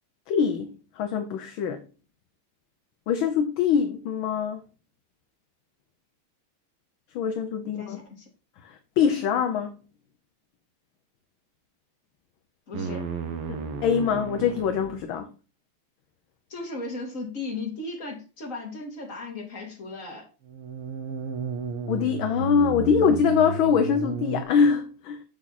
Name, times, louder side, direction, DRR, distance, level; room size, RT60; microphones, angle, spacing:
voice 1, 0.3-1.8 3.1-4.6 7.1-8.0 8.6-9.7 13.5-15.3 21.9-25.2, left 6 dB, 70° left, 1.5 m, -24 dB
voice 2, 7.6-8.3 12.7-13.1 16.5-20.3, left 3 dB, 35° left, 2.7 m, -36 dB
sound 1, 12.7-15.1 20.4-24.4, right 6 dB, 90° right, 2.1 m, -33 dB
7.4 x 6.4 x 4.1 m
omnidirectional pair, 2.4 m